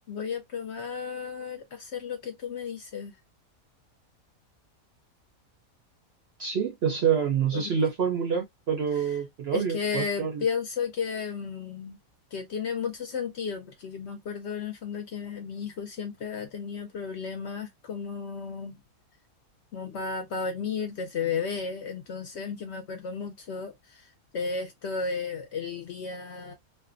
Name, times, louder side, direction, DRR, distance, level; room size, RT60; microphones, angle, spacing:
voice 1, 0.1-3.2 7.5-7.7 8.9-9.1 9.5-12.0 12.3-18.8 19.7-26.5, left 5 dB, 65° left, 0.7 m, -33 dB
voice 2, 6.4-10.4, right 7 dB, 60° right, 0.7 m, -27 dB
2.5 x 2.1 x 2.5 m
omnidirectional pair, 1.5 m